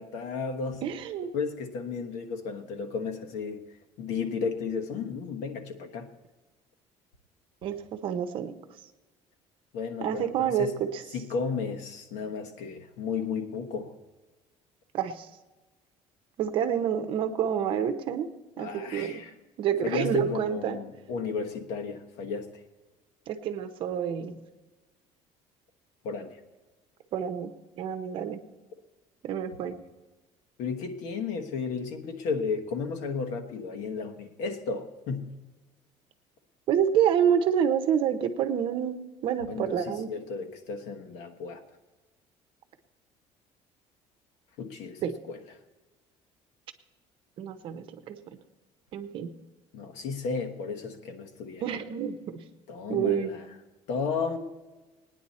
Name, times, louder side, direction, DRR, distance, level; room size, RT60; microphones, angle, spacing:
voice 1, 0.0-0.8 1.3-3.6 4.0-6.1 9.7-10.7 11.1-13.9 18.6-19.3 19.8-22.5 26.0-26.4 30.6-35.3 39.5-41.6 44.6-45.0 45.3-45.4 49.7-51.6 52.7-53.5 53.9-54.4, left 5 dB, 80° left, 5 dB, 1.3 m, -33 dB
voice 2, 0.8-1.3 7.6-8.5 10.0-11.0 14.9-15.3 16.4-18.3 18.6-19.2 19.6-20.8 23.3-24.4 27.1-28.4 29.2-29.8 36.7-40.1 45.0-45.1 47.4-48.4 48.9-49.3 51.6-52.4 52.9-53.3, right 9 dB, 45° right, 8 dB, 0.8 m, -28 dB
18.5 x 9.9 x 4.2 m, 1.2 s
cardioid pair, 175°, 12 cm